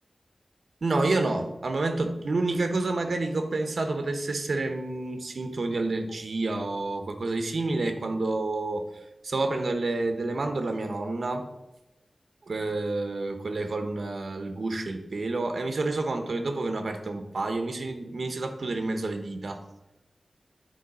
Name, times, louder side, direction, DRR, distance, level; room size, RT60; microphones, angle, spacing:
voice 1, 0.8-8.9 9.2-11.5 12.5-19.6, right 2 dB, 75° right, 6 dB, 0.9 m, -29 dB
10.5 x 4.7 x 4.1 m, 0.97 s
wide cardioid pair, 95°, 0 cm